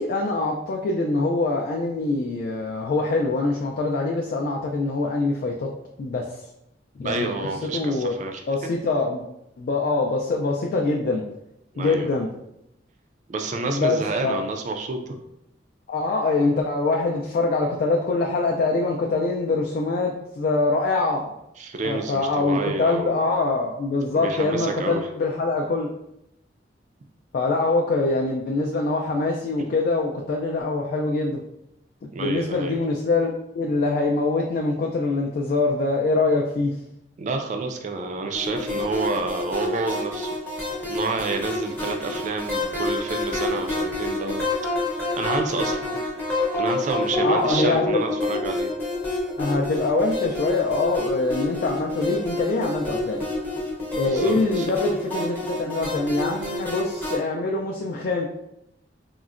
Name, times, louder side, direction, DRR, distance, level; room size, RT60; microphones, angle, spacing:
voice 1, 0.0-5.7 6.0-6.3 7.0-8.1 8.5-9.2 9.6-11.2 11.8-12.3 13.6-14.4 15.9-21.3 21.8-25.9 27.3-31.4 32.0-36.8 47.2-48.0 49.4-53.2 53.9-58.3, left 3 dB, 50° left, 0 dB, 0.3 m, -24 dB
voice 2, 7.0-8.4 11.8-12.1 13.3-15.2 21.6-23.2 24.1-25.0 32.1-32.7 37.2-40.3 40.9-44.5 45.2-45.9 46.6-48.7 54.0-54.7, right 3 dB, 40° right, 5 dB, 0.3 m, -29 dB
sound 1, 38.3-57.2, left 2 dB, 10° left, 0.7 m, -28 dB
3.7 x 2.1 x 2.4 m, 0.84 s
head